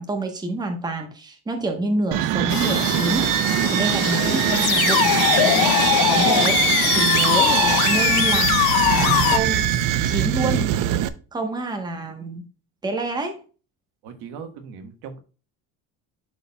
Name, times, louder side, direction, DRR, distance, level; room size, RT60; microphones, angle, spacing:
voice 1, 0.0-6.6 6.9-8.7 9.0-9.7 10.0-10.9 11.3-12.5 12.8-13.4, right 2 dB, 10° right, 4 dB, 1.0 m, -28 dB
Laughter, 2.1-8.0, left 6 dB, 55° left, 2.7 m, -46 dB
sound 1, 2.1-11.1, right 12 dB, 60° right, 0.7 m, -22 dB
sound 2, 2.5-9.4, left 15 dB, 75° left, 0.7 m, -21 dB
voice 2, 14.0-15.2, right 6 dB, 90° right, 7 dB, 1.5 m, -38 dB
11.5 x 4.2 x 2.3 m, 0.35 s
cardioid pair, 165°, 37 cm